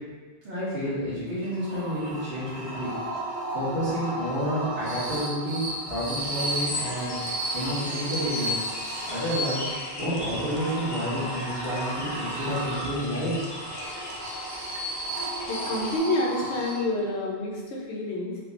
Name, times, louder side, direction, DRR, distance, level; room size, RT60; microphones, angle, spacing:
voice 1, 0.4-2.9 3.5-7.2 7.5-8.6 9.1-9.6 10.0-13.5 14.0-14.1, equal, 65° right, -11 dB, 2.0 m, -30 dB
sound 1, 1.4-17.2, right 1 dB, 80° right, 1.4 m, -34 dB
sound 2, 6.2-16.0, left 2 dB, 35° left, 0.4 m, -38 dB
voice 2, 15.5-18.4, left 1 dB, 70° left, -3 dB, 1.1 m, -28 dB
4.3 x 2.4 x 3.2 m, 1.5 s
omnidirectional pair, 1.2 m